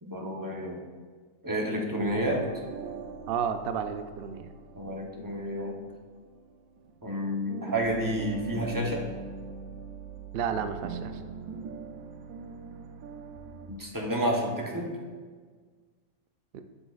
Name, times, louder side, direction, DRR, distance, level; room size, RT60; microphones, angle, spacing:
voice 1, 0.0-0.8 1.4-2.4 4.8-5.8 7.0-9.1 13.7-15.0, equal, 20° right, -1 dB, 0.7 m, -30 dB
sound 1, 1.9-7.2 7.5-13.8, right 5 dB, 80° right, 1.1 m, -42 dB
voice 2, 3.3-4.5 10.3-11.2 16.5-16.6, right 7 dB, 65° right, 9 dB, 0.6 m, -32 dB
12.0 x 6.7 x 2.4 m, 1.6 s
omnidirectional pair, 1.4 m